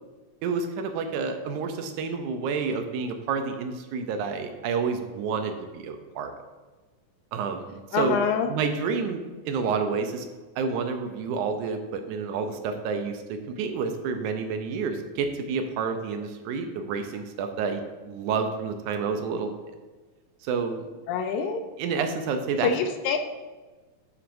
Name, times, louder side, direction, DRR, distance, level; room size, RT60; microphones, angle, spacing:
voice 1, 0.4-6.3 7.3-8.2 8.5-10.3 10.6-19.5 20.4-20.9 21.8-22.7, right 5 dB, 80° right, 7 dB, 2.0 m, -29 dB
voice 2, 7.9-8.5 21.1-21.6 22.6-23.2, left 6 dB, 80° left, 7 dB, 1.9 m, -25 dB
9.7 x 6.1 x 2.6 m, 1.3 s
omnidirectional pair, 3.6 m